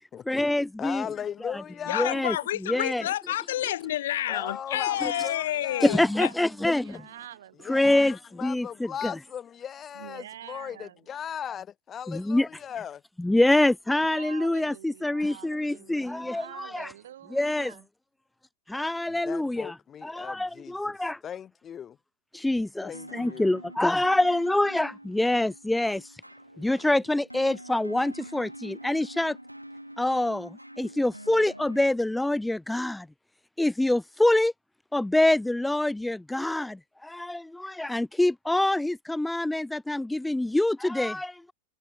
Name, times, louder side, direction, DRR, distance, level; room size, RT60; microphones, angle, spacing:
voice 1, 0.3-1.1 1.4-1.6 1.9-2.4 2.7-3.0 5.0-5.1 5.8-6.8 7.7-9.1 12.1-12.5 13.2-16.9 17.3-17.7 18.7-19.8 20.0-21.2 22.3-26.2 26.6-29.4 30.0-33.1 33.6-34.5 34.9-41.5, left 1 dB, 5° left, 0.9 m, -25 dB
voice 2, 0.8-2.2 4.3-6.0 6.6-7.0 7.6-13.0 19.1-20.7 21.2-22.0 22.8-23.5, left 8 dB, 25° left, 3.3 m, -37 dB
voice 3, 1.9-6.3, left 13 dB, 60° left, 0.9 m, -29 dB
voice 4, 4.7-7.7 9.9-11.1 14.0-17.9, right 11 dB, 60° right, 6.1 m, -46 dB
sound 1, 22.9-31.9, equal, 90° right, 3.7 m, -45 dB
figure-of-eight pair, 90°, 0 cm